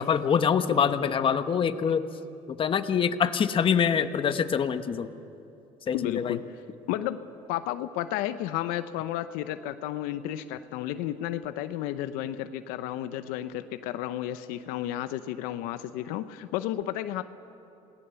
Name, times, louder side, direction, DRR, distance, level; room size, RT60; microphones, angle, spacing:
voice 1, 0.0-2.1 2.5-5.1 5.9-6.4, left 7 dB, 40° left, 10 dB, 1.1 m, -25 dB
voice 2, 5.9-6.6 6.9-7.2 7.5-17.2, left 12 dB, 85° left, 11 dB, 0.8 m, -32 dB
28.0 x 18.5 x 7.0 m, 2.7 s
cardioid pair, 110°, 14 cm